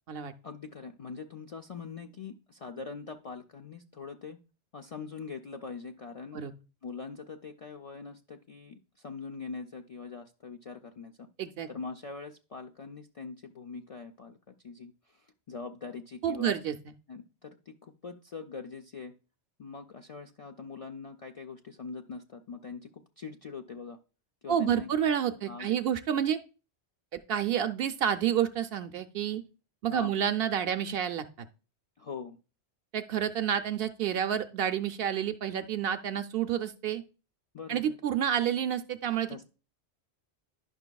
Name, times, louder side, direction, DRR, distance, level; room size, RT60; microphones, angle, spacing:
voice 1, 0.4-4.4 4.7-6.4 6.8-11.3 11.7-14.4 14.6-16.5 17.1-19.1 19.6-24.0 24.4-24.9 25.5-25.8 29.9-30.1 32.0-32.4 37.5-38.0 39.3-39.5, left 4 dB, 50° left, 3 dB, 0.4 m, -42 dB
voice 2, 11.4-11.7 16.2-16.8 24.5-26.4 27.1-29.4 29.8-31.5 32.9-37.0 37.7-39.5, right 9 dB, 65° right, 10 dB, 0.7 m, -29 dB
10.5 x 5.9 x 2.3 m, 0.34 s
omnidirectional pair, 1.1 m